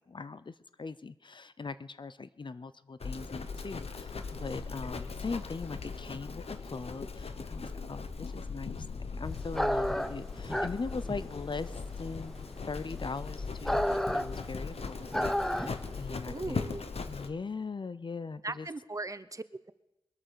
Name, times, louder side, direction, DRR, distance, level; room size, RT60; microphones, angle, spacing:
voice 1, 0.0-12.3 12.7-16.7 17.1-18.7, left 4 dB, 50° left, 15 dB, 0.5 m, -40 dB
Livestock farm animals working animals, 3.0-17.3, left 4 dB, 75° left, 1.0 m, -39 dB
sound 1, 9.5-16.0, equal, 5° left, 0.6 m, -32 dB
voice 2, 16.3-16.8 18.4-19.7, right 2 dB, 30° right, 14 dB, 0.7 m, -38 dB
22.0 x 8.9 x 6.8 m, 0.96 s
wide cardioid pair, 90°, 11 cm